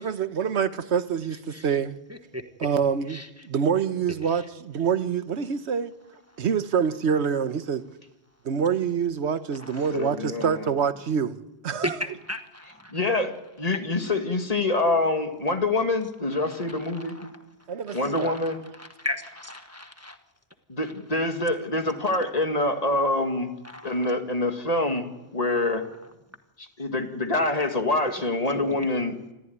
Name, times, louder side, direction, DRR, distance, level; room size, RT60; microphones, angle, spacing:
voice 1, 0.0-2.0 2.6-5.9 6.4-7.8 8.4-11.4 11.6-11.9 17.7-18.3, right 7 dB, 85° right, 1.3 m, -26 dB
voice 2, 2.1-2.4 3.1-3.5 4.2-4.5 6.3-6.4 9.5-10.5 11.8-13.0 14.0-14.2 16.3-17.4 17.9-20.2 20.8-20.9 23.6-24.1 28.5-28.9, left 1 dB, 15° right, 1.3 m, -37 dB
voice 3, 9.9-10.7 12.9-13.3 13.6-17.3 17.9-18.6 20.7-23.5 23.8-25.9 26.8-29.1, left 2 dB, 35° left, 2.2 m, -26 dB
26.5 x 14.5 x 9.4 m
omnidirectional pair, 1.1 m